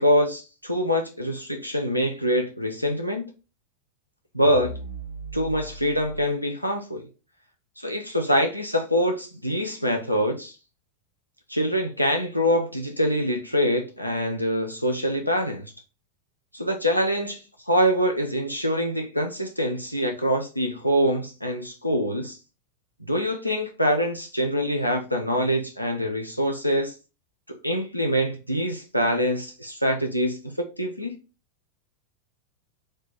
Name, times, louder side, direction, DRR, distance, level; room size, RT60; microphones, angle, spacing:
voice 1, 0.0-3.3 4.3-4.7 5.3-7.1 7.8-10.6 11.5-15.7 16.5-22.4 23.1-26.9 27.5-31.2, equal, 90° left, 0.5 m, -25 dB
sound 1, 4.4-6.3, right 1 dB, 85° right, 0.5 m, -37 dB
4.4 x 2.4 x 4.5 m
figure-of-eight pair, 90°, 0 cm